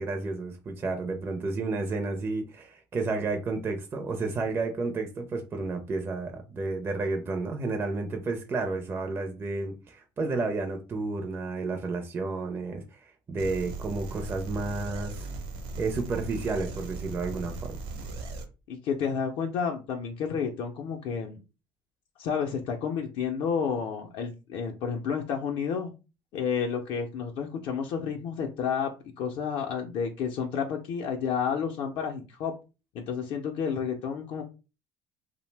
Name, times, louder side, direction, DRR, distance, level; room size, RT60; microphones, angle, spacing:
voice 1, 0.0-15.3 15.8-17.8, right 3 dB, 25° right, 0.4 m, -31 dB
sound 1, 13.4-18.4, right 3 dB, 70° right, 0.8 m, -38 dB
voice 2, 18.7-21.4 22.2-25.9 26.3-32.5 32.9-34.4, left 6 dB, 65° left, 0.5 m, -30 dB
2.7 x 2.0 x 3.2 m
cardioid pair, 125°, 10 cm